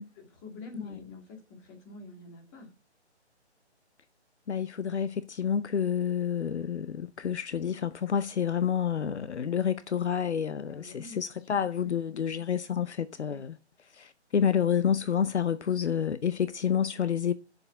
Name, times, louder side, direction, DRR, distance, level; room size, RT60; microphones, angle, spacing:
voice 1, 0.1-2.7 10.7-11.2 11.5-11.9 13.3-13.4, left 3 dB, 20° left, 2.4 m, -46 dB
voice 2, 4.5-13.6 13.9-17.3, left 8 dB, 75° left, 0.7 m, -29 dB
7.0 x 6.8 x 7.6 m
figure-of-eight pair, 145°, 35 cm